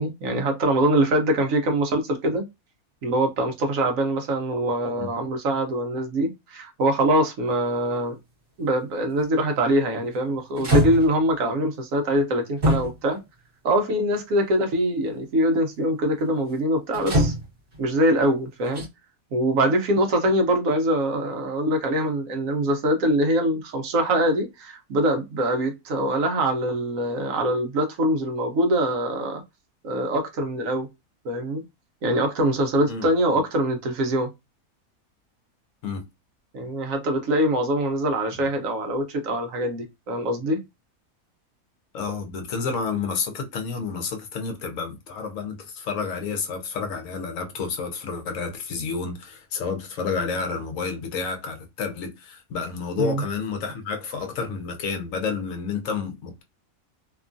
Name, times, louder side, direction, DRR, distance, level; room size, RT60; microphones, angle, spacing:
voice 1, 0.0-2.5 3.0-8.2 8.6-13.2 13.6-17.3 17.8-18.8 19.3-29.4 29.8-30.9 31.2-31.6 32.0-34.3 36.5-40.6 53.0-53.2, right 1 dB, 70° right, 1.0 m, -23 dB
sound 1, 9.1-9.4 10.1-10.2 10.6-11.3 12.6-13.2 14.1-14.2 16.9-17.8 18.6-18.9, equal, 40° right, 1.2 m, -23 dB
voice 2, 41.9-56.4, left 5 dB, 70° left, 1.0 m, -30 dB
2.9 x 2.3 x 2.5 m
omnidirectional pair, 1.5 m